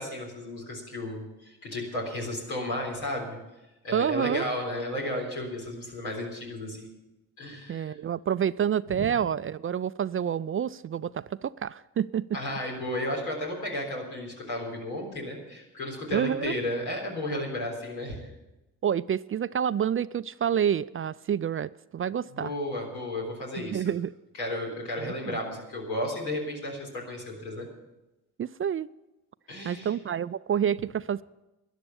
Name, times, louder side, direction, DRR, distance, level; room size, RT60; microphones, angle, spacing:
voice 1, 0.0-3.4 3.8-6.9 7.4-7.9 8.9-9.1 12.3-18.3 22.3-23.8 24.3-27.7 29.5-29.9, left 1 dB, 90° left, 3.9 m, -33 dB
voice 2, 3.9-4.4 7.7-12.4 16.1-16.5 18.8-22.5 23.6-24.1 25.0-25.4 28.4-28.9 29.6-31.2, right 8 dB, 35° right, 0.4 m, -28 dB
13.0 x 10.5 x 7.0 m
hypercardioid pair, 45°, 42 cm